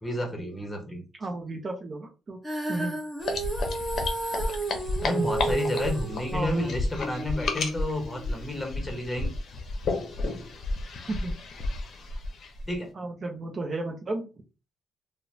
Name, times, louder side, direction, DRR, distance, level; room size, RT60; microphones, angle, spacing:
voice 1, 0.0-1.0 5.0-9.3 12.7-12.9, left 1 dB, 15° left, 2 dB, 1.0 m, -31 dB
voice 2, 1.2-2.4 2.7-3.0 6.3-6.6 11.1-11.4 12.9-14.3, right 2 dB, 40° right, 3 dB, 0.6 m, -33 dB
Female singing, 2.4-8.7, right 3 dB, 10° right, 0.8 m, -33 dB
sound 1, 3.2-12.7, left 2 dB, 55° left, 0.6 m, -32 dB
2.9 x 2.1 x 2.6 m, 0.32 s
cardioid pair, 90°, 0 cm